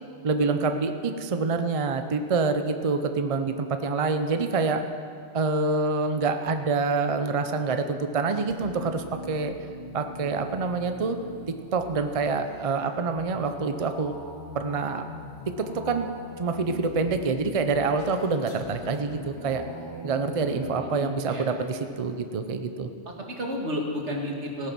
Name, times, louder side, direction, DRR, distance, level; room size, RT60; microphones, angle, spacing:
voice 1, 0.2-4.8 5.3-9.5 9.9-11.2 11.7-14.1 14.5-15.0 15.6-16.1 16.4-19.6 20.0-22.9, right 4 dB, 35° right, 7 dB, 0.6 m, -26 dB
sound 1, 7.5-20.8, left 1 dB, 65° left, 2.0 m, -42 dB
voice 2, 20.8-21.5 23.1-24.7, equal, 80° right, 0 dB, 2.1 m, -32 dB
17.0 x 9.2 x 6.1 m, 2.3 s
omnidirectional pair, 1.2 m